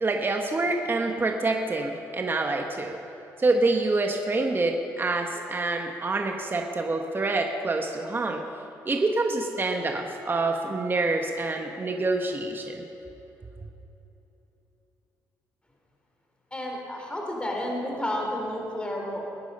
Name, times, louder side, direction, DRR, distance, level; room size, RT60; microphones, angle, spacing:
voice 1, 0.0-3.0 3.4-8.4 8.8-12.8, right 2 dB, 30° right, 3 dB, 1.4 m, -26 dB
voice 2, 16.5-19.2, left 1 dB, 15° left, 0 dB, 3.5 m, -31 dB
20.0 x 10.5 x 5.6 m, 3.0 s
supercardioid pair, 65°, 7 cm